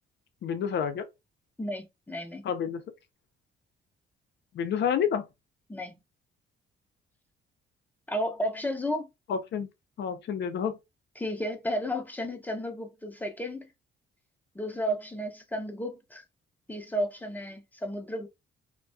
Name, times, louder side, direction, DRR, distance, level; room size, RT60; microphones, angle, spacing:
voice 1, 0.4-1.0 2.4-2.8 4.5-5.2 9.3-9.7 10.0-10.8, left 7 dB, 60° left, 0.6 m, -29 dB
voice 2, 1.6-2.4 5.7-6.0 8.1-9.1 11.2-13.7 14.5-16.2 16.7-18.3, equal, 10° left, 0.6 m, -33 dB
2.2 x 2.2 x 2.5 m
cardioid pair, 90°, 20 cm